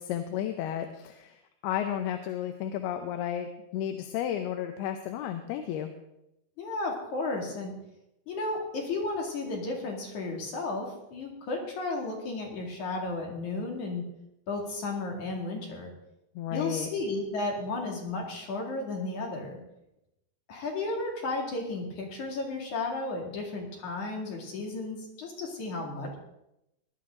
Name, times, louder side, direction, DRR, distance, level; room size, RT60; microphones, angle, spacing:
voice 1, 0.0-5.9 16.4-16.9, left 10 dB, 80° left, 7 dB, 2.7 m, -33 dB
voice 2, 6.6-7.7 8.3-14.0 14.5-15.9 16.5-19.6 20.5-26.2, left 3 dB, 50° left, 0 dB, 3.5 m, -33 dB
20.0 x 11.5 x 3.8 m, 0.85 s
omnidirectional pair, 4.6 m